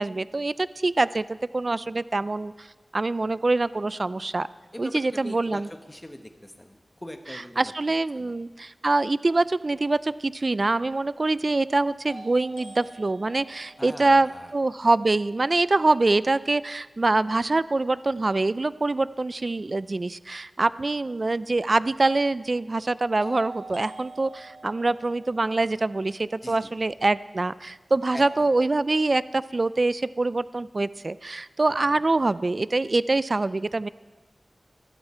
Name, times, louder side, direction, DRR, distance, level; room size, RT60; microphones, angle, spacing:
voice 1, 0.0-2.7 2.9-4.5 4.8-5.7 7.6-33.9, right 2 dB, 50° right, 17 dB, 0.4 m, -24 dB
voice 2, 4.7-5.6 5.9-7.7 8.1-8.3 13.8-14.5 26.4-26.7 28.1-28.5 31.8-32.0, left 1 dB, 15° left, 6 dB, 1.4 m, -41 dB
sound 1, 12.1-16.0 23.2-27.2, right 2 dB, 55° left, 6.2 m, -46 dB
19.5 x 12.5 x 4.5 m, 1.3 s
wide cardioid pair, 65°, 0 cm